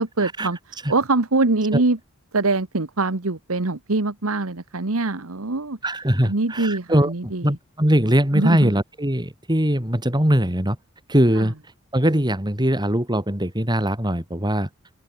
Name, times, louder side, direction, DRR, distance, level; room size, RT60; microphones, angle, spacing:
voice 1, 0.0-2.0 2.3-5.8 6.2-7.6 8.3-8.7 11.3-11.5, right 3 dB, 70° right, 1.4 m, -23 dB
voice 2, 5.8-10.8 11.1-11.5 11.9-14.7, equal, 20° right, 5.3 m, -21 dB
open air
head